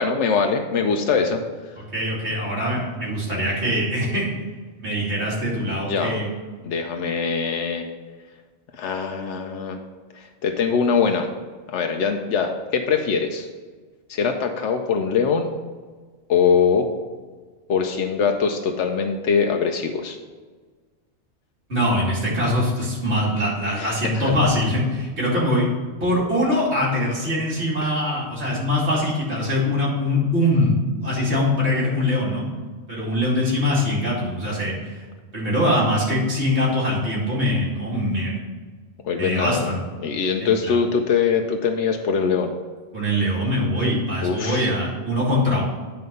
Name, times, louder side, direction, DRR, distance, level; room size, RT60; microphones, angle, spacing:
voice 1, 0.0-1.4 5.7-6.2 6.6-7.9 8.7-9.8 10.1-11.3 11.7-13.5 14.1-15.5 16.3-16.9 17.7-20.2 23.8-24.3 27.8-27.9 39.0-39.7 40.0-42.5 44.2-44.7, left 6 dB, 90° left, 4 dB, 1.0 m, -22 dB
voice 2, 1.9-4.3 4.8-6.3 21.7-25.7 26.0-32.4 32.9-35.0 35.3-38.4 39.2-39.8 40.4-40.8 42.9-45.6, left 1 dB, 70° right, -6 dB, 3.0 m, -23 dB
9.6 x 4.6 x 5.3 m, 1.4 s
omnidirectional pair, 1.2 m